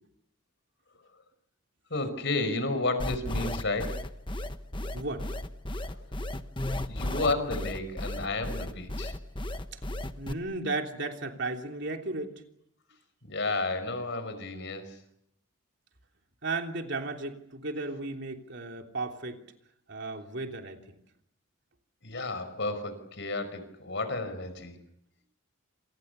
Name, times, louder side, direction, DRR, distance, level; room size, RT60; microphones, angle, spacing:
voice 1, 1.9-4.0 5.8-6.0 6.9-9.1 13.2-15.0 22.0-24.8, left 2 dB, 55° left, 11 dB, 5.2 m, -32 dB
sound 1, 3.0-10.3, left 1 dB, 25° left, 1.2 m, -34 dB
voice 2, 4.9-5.3 9.7-9.8 10.2-12.3 16.4-19.4 19.9-20.8, right 3 dB, 55° right, 3 dB, 3.2 m, -34 dB
29.0 x 27.0 x 6.9 m, 0.76 s
head